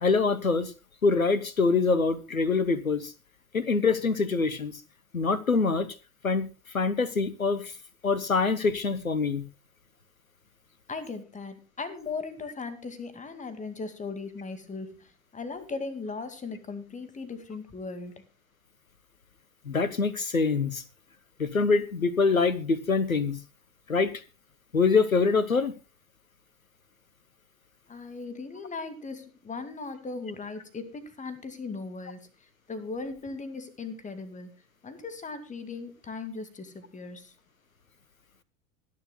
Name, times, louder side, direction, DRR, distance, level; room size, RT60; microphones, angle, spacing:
voice 1, 0.0-0.7 1.0-3.1 3.5-4.7 5.1-5.9 6.2-6.5 6.7-7.7 8.0-9.4 19.6-20.8 21.4-23.4 23.9-24.1 24.7-25.7, left 4 dB, 85° left, 1.3 m, -24 dB
voice 2, 10.9-18.2 27.9-32.2 32.7-34.5 34.8-37.3, left 4 dB, 20° left, 2.3 m, -38 dB
26.0 x 10.5 x 2.3 m
figure-of-eight pair, 80°, 40 cm